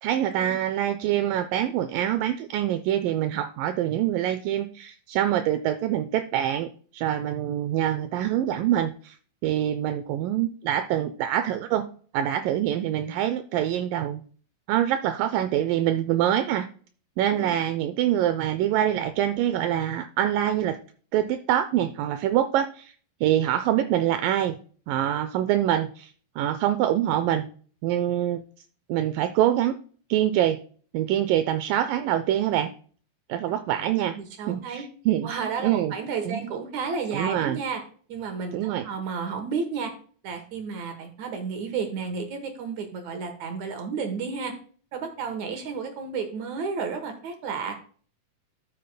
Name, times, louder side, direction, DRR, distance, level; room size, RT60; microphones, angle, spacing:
voice 1, 0.0-9.2 9.4-11.9 12.1-14.2 14.7-16.7 17.2-20.8 21.1-22.9 23.2-24.6 24.9-27.5 27.8-28.4 28.9-29.8 30.1-30.6 30.9-32.7 33.3-34.2 34.5-35.3 35.6-35.9 36.2-36.4 37.1-37.6 38.5-38.9, right 11 dB, 85° right, 10 dB, 2.0 m, -25 dB
voice 2, 34.2-34.8 35.2-37.8 38.1-39.9 40.2-44.5 44.9-47.8, right 5 dB, 65° right, 6 dB, 2.1 m, -32 dB
13.0 x 6.7 x 2.2 m, 0.43 s
omnidirectional pair, 4.4 m